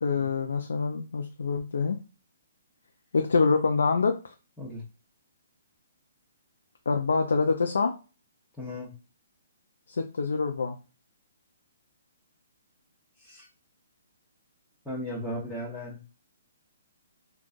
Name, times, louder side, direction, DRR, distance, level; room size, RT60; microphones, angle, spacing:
voice 1, 0.0-2.0 3.1-4.3 6.9-7.9 9.9-10.8, left 4 dB, 85° left, 4 dB, 0.4 m, -26 dB
voice 2, 8.6-8.9 13.2-13.5 14.8-16.0, left 1 dB, ahead, -9 dB, 0.8 m, -36 dB
3.8 x 2.3 x 2.5 m, 0.33 s
hypercardioid pair, 160°, 0 cm